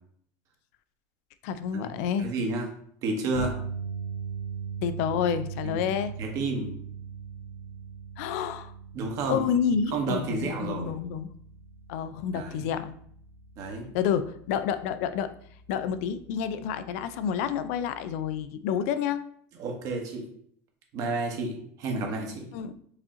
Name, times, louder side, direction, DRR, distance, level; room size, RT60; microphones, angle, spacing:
voice 1, 1.4-2.3 4.8-6.1 8.2-8.7 9.3-11.3 11.9-12.9 13.9-15.3 15.7-19.2 22.5-22.8, left 8 dB, 80° left, 12 dB, 0.4 m, -29 dB
voice 2, 2.2-2.7 3.0-3.6 5.6-5.8 6.2-6.7 8.9-9.5 9.9-10.9 12.3-12.6 13.6-13.9 19.6-20.2 20.9-22.5, right 3 dB, 45° right, 2 dB, 1.2 m, -31 dB
sound 1, 3.4-15.6 15.9-16.2 18.4-18.5, right 6 dB, 50° left, 1.4 m, -40 dB
4.7 x 2.8 x 3.7 m, 0.64 s
cardioid pair, 150°, 8 cm